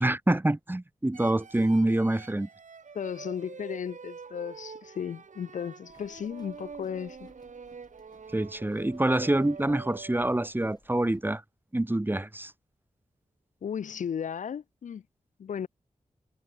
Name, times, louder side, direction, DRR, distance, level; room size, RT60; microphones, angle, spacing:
voice 1, 0.0-2.5 8.3-11.4 11.7-12.5, right 1 dB, 15° right, 0.8 m, -26 dB
sound 1, 1.1-10.5, right 5 dB, 70° right, 1.6 m, -46 dB
voice 2, 2.9-7.3 13.6-15.0 15.4-15.7, left 8 dB, 75° left, 0.4 m, -35 dB
Livestock farm animals working animals, 5.9-11.2, left 2 dB, 30° left, 7.1 m, -62 dB
cardioid pair, 50°, 13 cm